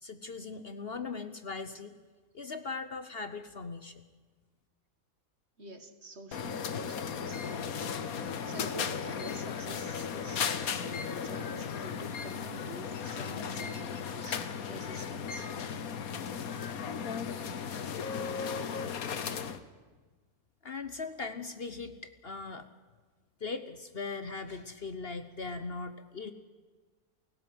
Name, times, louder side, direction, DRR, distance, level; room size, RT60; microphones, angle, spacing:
voice 1, 0.0-2.0 2.3-4.0 20.6-22.7 23.4-26.3, left 4 dB, 45° left, 10 dB, 1.1 m, -39 dB
voice 2, 5.6-15.5 16.5-16.6, right 1 dB, 45° right, 8 dB, 2.0 m, -47 dB
sound 1, 6.3-19.6, left 6 dB, 75° left, 1.6 m, -36 dB
29.5 x 16.5 x 7.9 m, 1.4 s
omnidirectional pair, 1.5 m